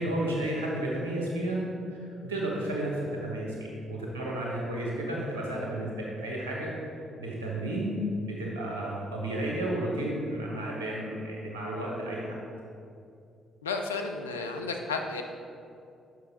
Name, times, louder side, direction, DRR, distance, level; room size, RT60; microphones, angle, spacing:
voice 1, 0.0-1.6 1.9-2.0 2.3-2.9 3.2-6.7 7.2-7.9 8.2-12.3, right 1 dB, 90° right, -3 dB, 1.1 m, -32 dB
voice 2, 13.6-15.2, left 4 dB, 90° left, 4 dB, 0.4 m, -32 dB
6.2 x 5.7 x 4.2 m, 2.5 s
hypercardioid pair, 45°, 0 cm